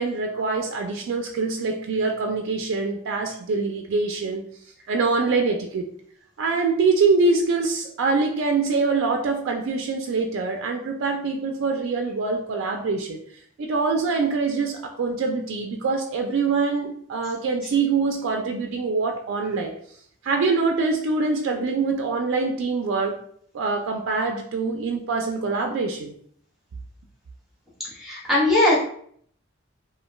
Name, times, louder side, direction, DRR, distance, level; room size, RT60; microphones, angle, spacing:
voice 1, 0.0-4.5 4.9-5.9 6.4-13.2 13.6-19.7 20.2-23.2 23.5-26.1, right 4 dB, 85° right, 3 dB, 0.3 m, -24 dB
voice 2, 27.8-28.8, left 1 dB, ahead, -7 dB, 0.8 m, -20 dB
2.4 x 2.2 x 3.0 m, 0.62 s
head